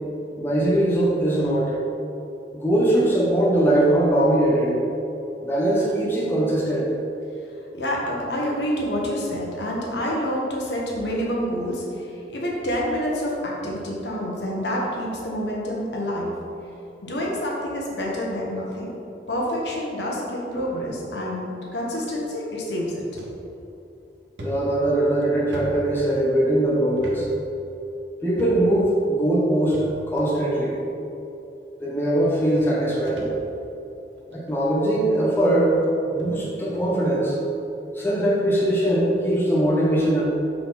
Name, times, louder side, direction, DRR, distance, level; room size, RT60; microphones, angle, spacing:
voice 1, 0.3-1.7 2.5-4.8 5.4-6.9 24.4-27.3 28.2-30.8 31.8-33.2 34.3-35.7 36.1-37.4 37.9-40.2, right 1 dB, 10° left, -6 dB, 0.9 m, -21 dB
voice 2, 7.7-16.3 17.0-18.9 19.3-21.5 21.7-23.0, equal, 75° left, -3 dB, 1.2 m, -27 dB
sound 1, 23.2-23.4 23.8-23.9 24.4-26.4 27.0-27.2 27.5-27.6 28.4-28.8 29.7-30.3 31.2-31.3 32.2-32.3 32.6-33.8 34.2-34.5 35.2-35.3 35.8-35.9 36.2-36.3 36.7-36.9, equal, 85° right, 1.0 m, -38 dB
6.1 x 4.7 x 3.9 m, 2.9 s
head